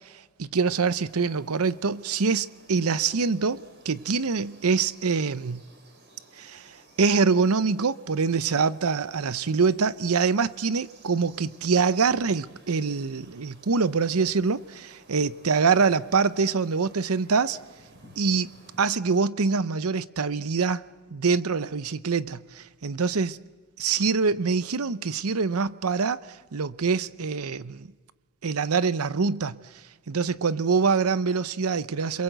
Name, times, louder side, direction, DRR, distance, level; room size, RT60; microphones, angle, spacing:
voice 1, 0.4-5.6 6.4-6.7 7.0-17.6 18.2-18.5 18.8-20.8 21.1-23.3 23.8-26.2 26.5-27.9 28.4-29.6 30.1-32.2, right 5 dB, 80° right, 0.8 m, -25 dB
sound 1, 0.6-18.9, right 2 dB, 50° right, 4.6 m, -55 dB
30.0 x 22.5 x 8.0 m
head